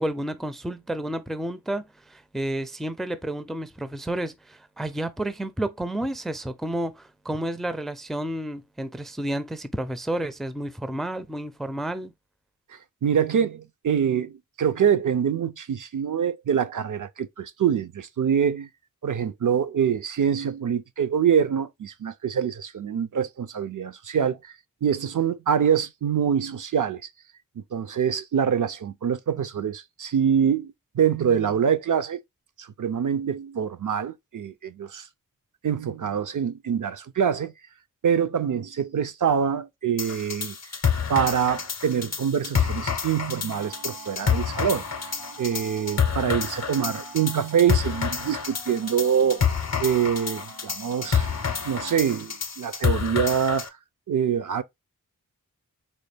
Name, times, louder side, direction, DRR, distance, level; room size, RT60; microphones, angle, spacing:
voice 1, 0.0-12.1, right 1 dB, ahead, 0.4 m, -31 dB
voice 2, 12.7-18.7 19.0-24.5 24.8-27.1 27.6-32.2 32.6-35.1 35.6-37.5 38.0-40.5 41.1-44.9 45.4-51.3 51.6-53.8 54.1-54.6, right 8 dB, 60° right, 0.5 m, -25 dB
sound 1, 40.0-53.7, left 6 dB, 50° left, 0.6 m, -28 dB
sound 2, 43.5-52.0, right 4 dB, 85° right, 1.1 m, -44 dB
4.1 x 2.2 x 3.3 m
wide cardioid pair, 60°, 35 cm